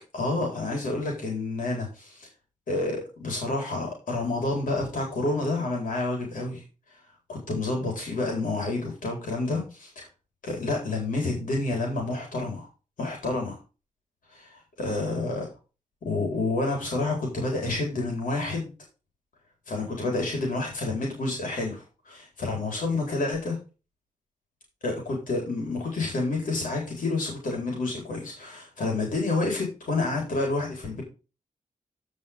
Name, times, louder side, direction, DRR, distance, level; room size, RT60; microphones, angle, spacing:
voice 1, 0.1-2.3 2.7-6.6 7.3-10.1 10.4-12.7 13.0-13.6 14.3-14.4 14.8-15.5 16.0-18.7 19.7-23.6 24.8-31.0, left 2 dB, 70° left, -1 dB, 4.2 m, -29 dB
15.5 x 5.4 x 3.6 m, 0.32 s
wide cardioid pair, 120°, 14 cm